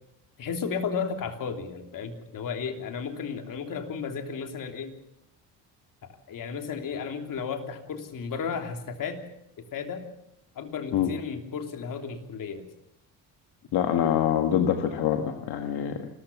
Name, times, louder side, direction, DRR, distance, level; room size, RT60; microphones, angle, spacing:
voice 1, 0.4-5.0 6.3-9.2 9.7-10.0 10.5-12.7, left 6 dB, 60° left, 5 dB, 3.2 m, -33 dB
voice 2, 13.7-16.1, left 9 dB, 80° left, 5 dB, 1.7 m, -25 dB
27.5 x 15.0 x 7.1 m, 0.80 s
cardioid pair, 110°, 38 cm